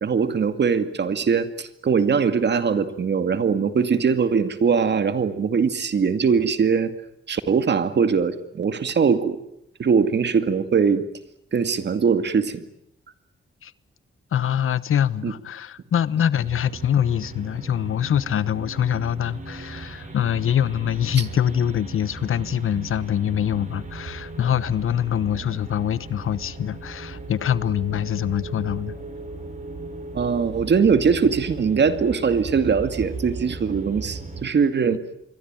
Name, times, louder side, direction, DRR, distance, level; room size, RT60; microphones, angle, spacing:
voice 1, 0.0-6.9 7.3-9.4 9.8-11.0 11.5-12.6 15.2-15.3 30.1-35.0, right 6 dB, 55° right, 2.3 m, -21 dB
voice 2, 14.3-28.9, left 9 dB, 85° left, 1.1 m, -24 dB
sound 1, 16.4-34.4, right 3 dB, 40° right, 7.5 m, -37 dB
27.5 x 23.0 x 9.1 m
wide cardioid pair, 140°, 21 cm